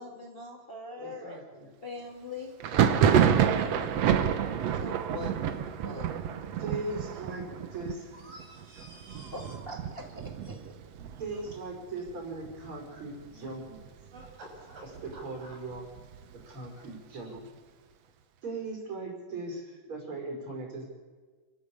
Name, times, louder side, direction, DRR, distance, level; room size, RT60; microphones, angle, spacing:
voice 1, 0.0-1.4 1.8-2.5 3.0-4.0 4.6-6.1 9.1-10.7, left 2 dB, 20° left, 1 dB, 1.8 m, -43 dB
voice 2, 1.0-1.7 6.6-8.2 10.7-10.8 11.2-13.8 14.8-15.8 16.5-17.5 18.4-20.9, right 2 dB, 40° right, 1 dB, 5.8 m, -39 dB
Thunder, 2.6-12.1 12.4-13.1 13.3-14.3 14.7-16.4, right 8 dB, 65° right, 1.9 m, -29 dB
voice 3, 8.2-9.5 14.1-14.8 15.1-15.6, right 1 dB, 80° right, -2 dB, 8.0 m, -50 dB
27.5 x 13.5 x 8.5 m, 1.4 s
omnidirectional pair, 3.8 m